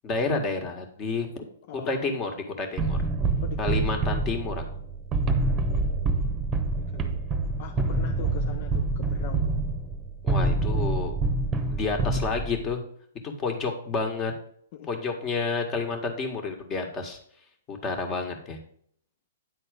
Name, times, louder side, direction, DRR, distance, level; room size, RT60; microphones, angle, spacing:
voice 1, 0.0-1.5 1.7-3.0 3.6-4.6 10.2-11.1 11.7-12.8 13.2-14.3 14.9-17.2 17.7-18.6, left 4 dB, 25° left, 1.7 m, -30 dB
voice 2, 1.7-2.1 3.4-4.0 6.7-7.3 7.6-9.6 14.7-14.9, left 9 dB, 50° left, 0.5 m, -42 dB
sound 1, 2.8-12.7, right 3 dB, 20° right, 1.0 m, -26 dB
9.4 x 4.1 x 5.1 m
hypercardioid pair, 130°, 0 cm